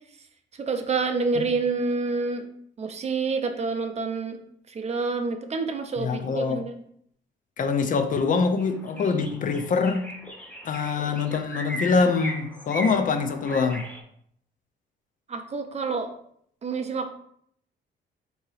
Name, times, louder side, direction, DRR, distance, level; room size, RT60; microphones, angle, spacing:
voice 1, 0.6-2.5 2.8-4.4 4.7-6.8 15.3-16.1 16.6-17.1, right 4 dB, 35° right, 0.5 m, -28 dB
voice 2, 6.0-6.6 7.6-10.1 10.6-13.8, left 5 dB, 45° left, 0.4 m, -24 dB
sound 1, 8.2-8.3 8.6-14.0, right 1 dB, 5° left, 0.7 m, -38 dB
3.9 x 2.8 x 4.0 m
cardioid pair, 150°, 19 cm